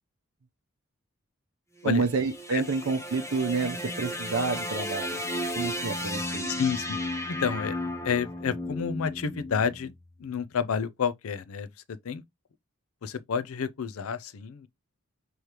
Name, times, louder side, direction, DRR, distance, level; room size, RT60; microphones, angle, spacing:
sound 1, 1.8-10.1, left 1 dB, 15° left, 0.7 m, -34 dB
voice 1, 1.8-5.2 5.5-6.5, right 4 dB, 75° right, 0.6 m, -29 dB
voice 2, 6.5-7.0 7.3-7.8 8.0-9.9 10.2-12.2 13.0-14.7, left 6 dB, 85° left, 0.5 m, -30 dB
4.8 x 3.1 x 2.9 m
head